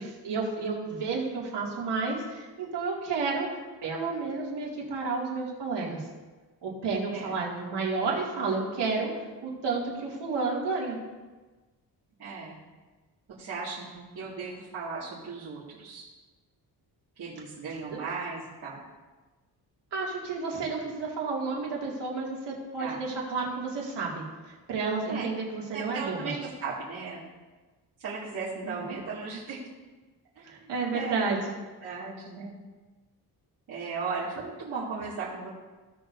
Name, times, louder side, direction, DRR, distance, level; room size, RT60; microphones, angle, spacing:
voice 1, 0.0-3.5 3.8-6.0 6.6-9.1 9.4-11.0 17.9-18.0 19.9-26.3 28.6-29.0 30.4-31.6, right 4 dB, 85° right, -3 dB, 2.5 m, -31 dB
voice 2, 12.2-12.6 13.3-16.0 17.2-18.8 22.8-23.0 25.1-25.3 25.7-27.2 28.0-29.6 30.4-31.3 31.8-32.6 33.7-35.5, right 4 dB, 60° right, -10 dB, 2.3 m, -36 dB
16.0 x 6.9 x 2.7 m, 1.3 s
wide cardioid pair, 165°, 41 cm